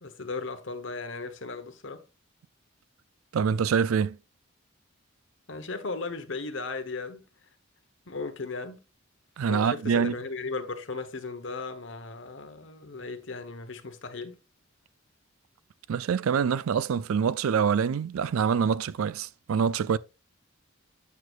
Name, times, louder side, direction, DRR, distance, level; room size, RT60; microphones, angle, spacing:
voice 1, 0.0-2.0 5.5-7.2 8.1-8.8 9.5-14.4, left 3 dB, 65° left, 1.1 m, -36 dB
voice 2, 3.3-4.2 9.4-10.1 15.9-20.0, right 6 dB, 90° right, 0.4 m, -25 dB
8.5 x 6.3 x 2.4 m
head